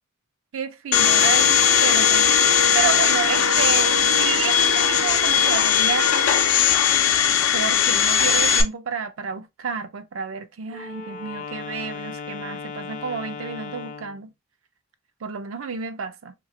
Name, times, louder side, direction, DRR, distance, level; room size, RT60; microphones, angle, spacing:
voice 1, 0.5-6.3 7.5-14.3 15.2-16.3, right 6 dB, 75° right, 0.5 m, -30 dB
Domestic sounds home sounds, 0.9-8.6, left 7 dB, 90° left, 0.5 m, -18 dB
Wind instrument woodwind instrument, 10.7-14.2, left 5 dB, 40° left, 0.4 m, -36 dB
3.2 x 2.6 x 2.6 m
head